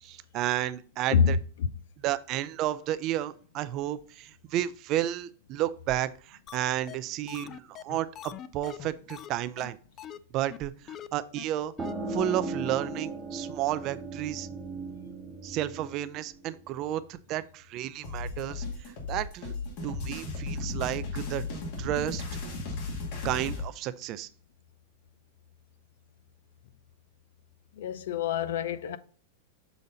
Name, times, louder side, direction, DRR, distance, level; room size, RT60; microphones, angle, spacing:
voice 1, 0.0-1.4 2.0-9.8 10.3-11.7 12.1-14.5 15.4-18.6 19.1-19.5 19.8-21.4 21.8-22.4 23.2-24.3, right 13 dB, 40° right, 0.4 m, -32 dB
sound 1, 6.5-6.6 6.9-7.0 7.3-9.3 9.6-9.7 10.0-10.2 10.5-10.6 10.9-11.1 11.4-11.5 11.8-11.9 12.3-12.4 12.6-12.7, left 10 dB, 30° left, 0.3 m, -42 dB
sound 2, 11.8-17.2, right 2 dB, 15° right, 0.9 m, -37 dB
sound 3, 18.0-23.7, left 3 dB, 55° left, 2.1 m, -35 dB
voice 2, 27.8-29.0, left 7 dB, 75° left, 0.5 m, -26 dB
7.1 x 4.0 x 3.9 m
supercardioid pair, 145°, 0 cm